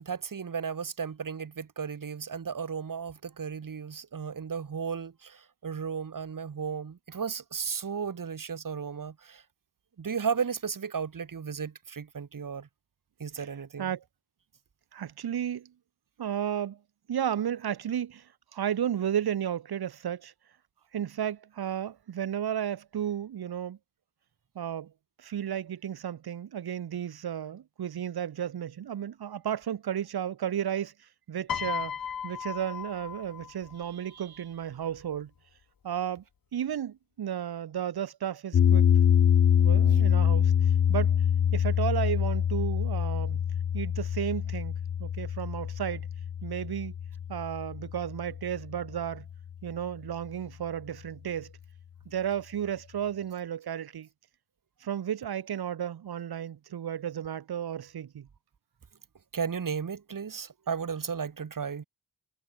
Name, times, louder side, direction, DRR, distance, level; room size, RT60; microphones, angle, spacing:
voice 1, 0.0-9.4 10.0-12.7 13.2-13.9 59.3-61.8, right 6 dB, 55° right, 3.8 m, -34 dB
voice 2, 14.9-15.7 16.2-16.8 17.1-20.3 20.9-23.8 24.5-24.9 25.2-30.9 31.3-31.9 32.2-35.3 35.8-36.2 36.5-38.8 39.6-41.2 41.5-43.4 43.7-46.1 46.4-46.9 47.3-49.3 49.6-51.5 52.0-54.1 54.8-58.3, right 9 dB, 75° right, 1.5 m, -33 dB
Piano, 31.5-33.9 34.9-35.2, left 8 dB, 65° left, 1.9 m, -35 dB
sound 1, 38.5-48.8, left 8 dB, 40° left, 0.5 m, -25 dB
cardioid pair, 80°, 38 cm